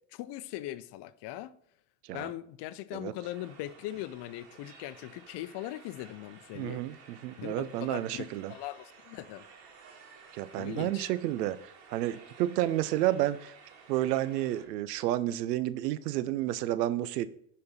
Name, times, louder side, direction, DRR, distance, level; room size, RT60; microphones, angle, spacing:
voice 1, 0.1-1.6 2.1-6.8 7.4-9.5 10.6-11.1, left 14 dB, 60° left, 0.7 m, -40 dB
sound 1, 3.2-14.7, right 5 dB, 70° right, 2.3 m, -54 dB
voice 2, 6.5-8.5 10.3-13.5 13.9-17.3, right 14 dB, 90° right, 0.7 m, -31 dB
10.5 x 4.3 x 5.6 m
hypercardioid pair, 75°, 47 cm